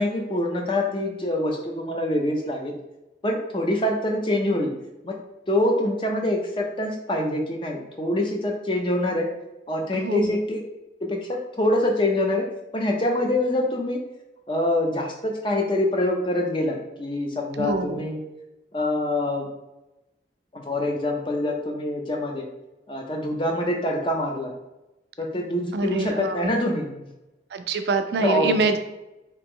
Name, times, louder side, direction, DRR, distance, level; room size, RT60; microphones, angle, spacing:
voice 1, 0.0-2.7 3.2-4.7 5.0-5.1 5.5-9.3 9.7-10.6 11.0-12.4 12.7-14.0 14.5-18.2 18.7-19.5 20.5-22.5 22.9-24.5 25.2-27.0 28.1-28.6, left 1 dB, 30° left, 1 dB, 0.5 m, -25 dB
voice 2, 9.9-10.4 17.6-18.1 25.7-26.5 27.5-28.8, right 3 dB, 70° right, 8 dB, 0.3 m, -25 dB
2.9 x 2.9 x 3.6 m, 0.98 s
head